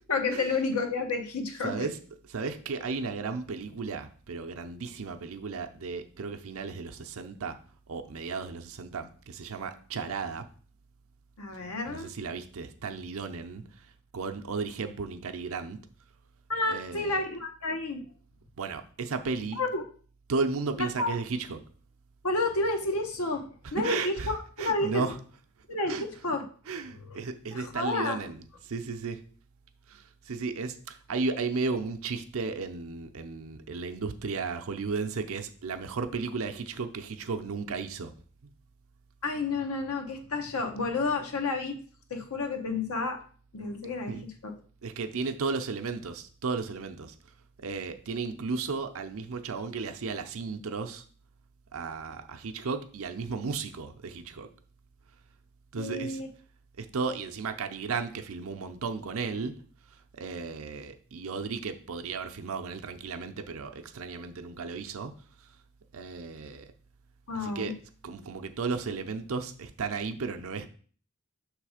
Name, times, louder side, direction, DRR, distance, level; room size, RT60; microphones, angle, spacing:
voice 1, 0.1-1.9 11.4-12.1 16.5-18.1 19.6-19.8 20.8-21.1 22.2-25.1 25.7-26.4 26.9-27.2 27.5-28.2 39.2-41.8 42.1-43.2 43.5-44.5 55.8-56.3 67.3-67.7, left 3 dB, 80° left, 4 dB, 0.9 m, -30 dB
voice 2, 1.6-2.0 2.2-7.6 7.9-10.5 11.9-15.8 16.7-17.2 18.6-19.6 20.3-21.6 23.8-24.3 24.6-25.2 25.9-26.0 26.7-29.2 29.9-38.1 44.1-44.3 44.8-47.2 47.6-51.0 51.7-54.5 55.7-56.2 56.8-59.6 59.9-65.1 65.4-65.5 65.9-66.7 67.3-67.7 68.0-70.7, right 4 dB, 70° right, 7 dB, 0.6 m, -34 dB
6.3 x 3.3 x 4.9 m, 0.43 s
head